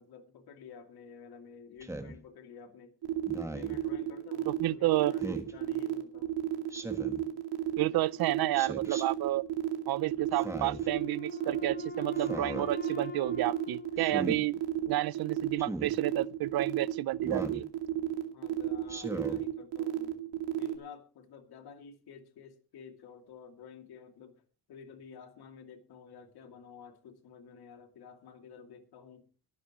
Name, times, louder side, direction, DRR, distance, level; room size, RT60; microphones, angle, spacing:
voice 1, 0.0-3.0 3.4-6.4 18.3-20.2 20.6-29.3, left 6 dB, 65° left, 2.6 m, -51 dB
Speech synthesizer, 1.8-2.1 3.3-3.8 5.2-5.5 6.7-7.2 8.5-9.0 10.3-10.9 12.2-12.7 14.0-14.4 15.6-15.9 17.2-17.6 18.9-19.4, right 2 dB, 5° right, 1.4 m, -38 dB
sound 1, 3.0-20.7, right 14 dB, 90° right, 2.4 m, -32 dB
voice 2, 4.5-5.1 7.8-9.4 9.9-14.6 14.9-17.7, right 15 dB, 60° right, 0.6 m, -31 dB
Wind instrument woodwind instrument, 10.5-15.0, left 5 dB, 20° left, 4.5 m, -44 dB
24.0 x 9.9 x 3.0 m
cardioid pair, 155°, 41 cm